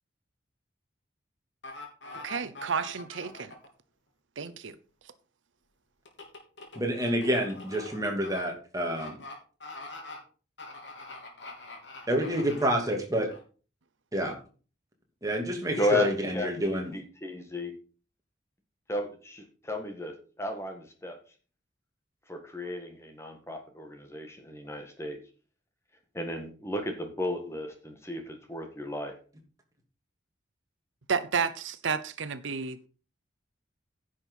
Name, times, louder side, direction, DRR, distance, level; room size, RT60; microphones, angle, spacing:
sound 1, 1.6-3.7 6.1-8.4 8.9-9.3 9.6-10.2 10.6-12.8 13.3-13.4, left 2 dB, 65° left, 3.0 m, -43 dB
voice 1, 2.1-3.5 4.4-4.8 31.1-32.9, right 5 dB, 75° right, 0.8 m, -31 dB
voice 2, 6.7-9.2 12.1-13.3 14.1-14.4 15.2-16.9, right 1 dB, 15° right, 2.5 m, -28 dB
voice 3, 15.8-16.1 16.3-17.7 18.9-21.2 22.3-25.2 26.1-29.1, left 1 dB, 15° left, 1.8 m, -34 dB
10.5 x 6.4 x 5.4 m
head